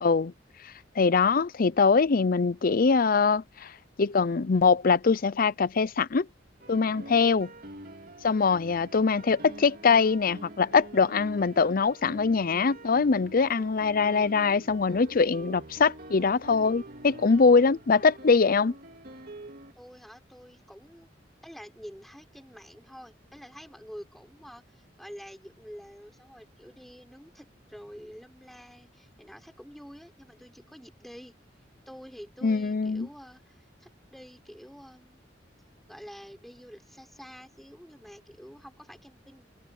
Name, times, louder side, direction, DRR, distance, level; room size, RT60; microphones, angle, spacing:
voice 1, 0.0-0.3 1.0-3.7 4.0-6.3 6.7-7.5 8.2-18.7 32.4-33.1, left 4 dB, 50° left, 0.6 m, -23 dB
sound 1, 6.6-19.7, right 1 dB, 55° right, 2.9 m, -46 dB
voice 2, 19.8-21.1 21.4-31.4 31.9-35.2 35.9-39.5, equal, ahead, 5.8 m, -48 dB
head